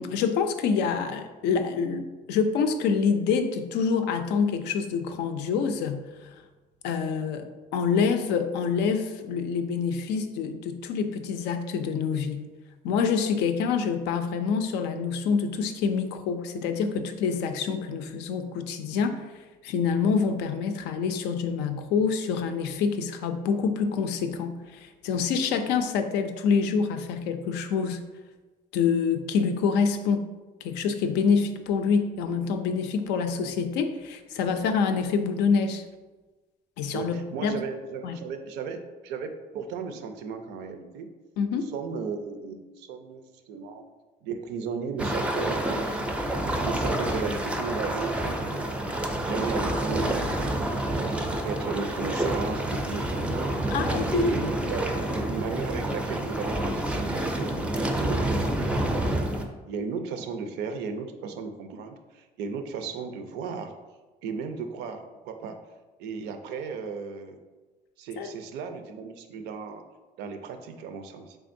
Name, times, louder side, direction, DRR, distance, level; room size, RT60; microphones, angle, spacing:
voice 1, 0.0-6.3 6.8-12.5 12.8-19.2 19.6-28.0 28.7-30.2 30.6-35.8 36.8-37.1 37.4-37.6 38.0-38.2 41.4-41.7 53.7-54.3 68.2-68.3, left 5 dB, 90° left, 7 dB, 0.4 m, -26 dB
voice 2, 36.9-41.1 41.5-43.8 44.2-46.2 46.6-48.7 49.2-50.9 51.3-53.7 54.1-59.3 59.7-63.7 64.2-65.6 66.0-67.4 68.0-69.8 70.2-71.4, right 5 dB, 85° right, 7 dB, 0.4 m, -35 dB
sound 1, 45.0-59.4, right 1 dB, 5° right, 0.4 m, -28 dB
3.6 x 3.4 x 2.6 m, 1.2 s
cardioid pair, 110°, 17 cm